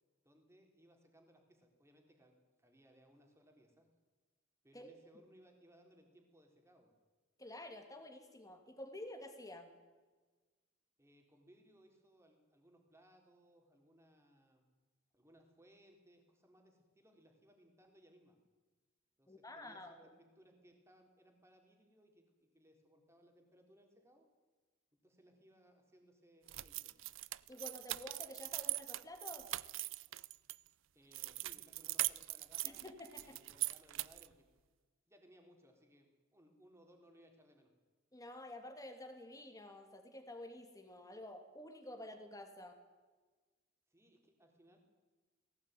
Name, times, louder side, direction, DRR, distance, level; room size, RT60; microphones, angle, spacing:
voice 1, 0.2-3.9 4.6-7.0 11.0-14.7 15.1-18.4 19.2-24.3 25.0-27.1 30.9-32.9 33.1-34.5 35.1-37.8 43.9-44.8, equal, 15° right, 3 dB, 3.8 m, -66 dB
voice 2, 7.4-9.7 19.3-20.1 27.5-29.5 32.6-33.4 38.1-42.8, left 1 dB, 15° left, 6 dB, 2.6 m, -50 dB
sound 1, 26.5-30.6 31.1-34.3, right 17 dB, 65° right, 0.5 m, -41 dB
19.0 x 17.0 x 9.4 m, 1.3 s
head